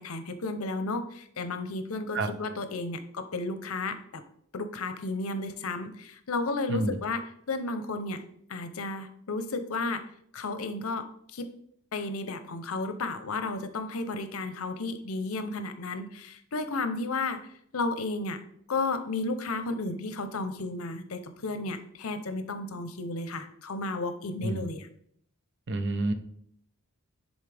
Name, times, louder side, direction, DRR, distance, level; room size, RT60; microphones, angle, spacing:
voice 1, 0.0-4.2 4.5-8.2 8.5-10.0 10.3-11.1 11.3-11.5 11.9-17.4 17.7-18.4 18.7-24.9, left 3 dB, 75° left, 9 dB, 0.7 m, -33 dB
voice 2, 25.7-26.1, right 2 dB, 55° right, 9 dB, 0.7 m, -28 dB
10.5 x 4.1 x 3.4 m, 0.67 s
head